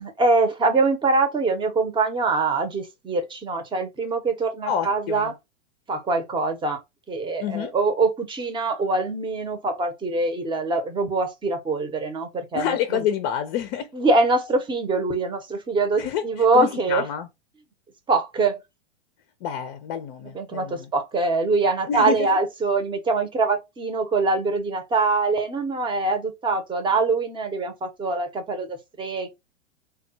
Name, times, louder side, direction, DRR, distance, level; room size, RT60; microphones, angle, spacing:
voice 1, 0.0-5.3 5.9-6.8 7.1-13.0 13.9-17.1 18.1-18.6 20.2-29.3, right 3 dB, 15° right, 0.8 m, -24 dB
voice 2, 4.7-5.3 7.4-7.7 12.5-13.9 16.0-17.3 19.4-20.9 21.9-22.3, left 9 dB, 40° left, 0.6 m, -28 dB
3.4 x 2.3 x 2.7 m
hypercardioid pair, 115°, 37 cm